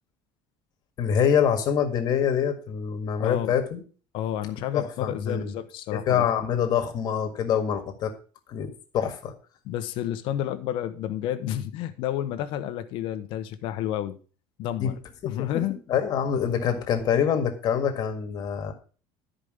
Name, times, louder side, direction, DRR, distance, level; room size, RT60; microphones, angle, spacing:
voice 1, 1.0-3.8 4.7-5.5 5.9-8.1 8.5-9.3 14.8-14.9 15.2-15.6 15.9-18.7, left 8 dB, 45° left, 6 dB, 1.8 m, -25 dB
voice 2, 3.2-3.5 4.1-6.2 9.6-14.2 14.6-14.9 15.2-15.8, left 11 dB, 60° left, 10 dB, 0.9 m, -30 dB
12.5 x 5.1 x 5.0 m, 0.37 s
cardioid pair, 145°, 10 cm